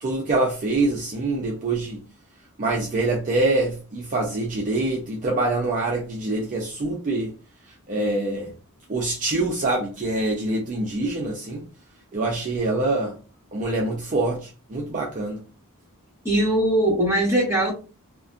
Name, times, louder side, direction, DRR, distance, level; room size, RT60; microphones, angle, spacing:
voice 1, 0.0-2.0 2.6-7.3 7.9-8.5 8.9-11.6 12.1-13.2 13.5-15.4, right 2 dB, 35° right, 0.5 m, -25 dB
voice 2, 16.2-17.7, right 1 dB, 10° right, 1.1 m, -20 dB
2.5 x 2.1 x 2.4 m
head